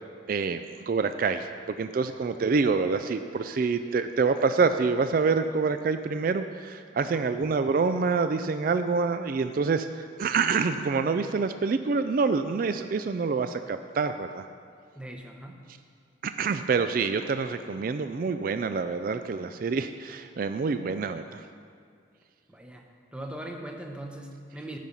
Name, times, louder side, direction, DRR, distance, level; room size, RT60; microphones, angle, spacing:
voice 1, 0.3-14.5 16.2-21.4, right 4 dB, 45° right, 10 dB, 0.3 m, -27 dB
voice 2, 14.9-15.7 22.5-24.8, right 1 dB, 5° right, 2 dB, 0.8 m, -40 dB
14.5 x 5.7 x 5.3 m, 2.2 s
head